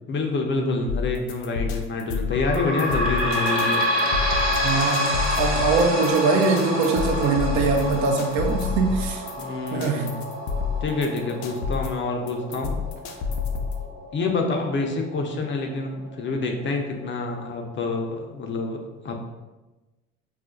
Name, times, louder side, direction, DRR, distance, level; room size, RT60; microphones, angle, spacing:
voice 1, 0.1-3.8 9.4-10.1 10.8-12.8 14.1-18.8 19.0-19.2, left 3 dB, 40° left, 2 dB, 0.6 m, -27 dB
sound 1, 0.9-13.9, left 5 dB, 85° left, 0.5 m, -29 dB
sound 2, 2.3-15.5 16.0-16.1 16.4-16.5 17.3-17.4, equal, 45° right, 0.9 m, -28 dB
voice 2, 4.6-9.2 9.7-10.2, right 4 dB, 75° right, 3 dB, 0.6 m, -22 dB
2.4 x 2.1 x 3.7 m, 1.1 s
supercardioid pair, 75°, 30 cm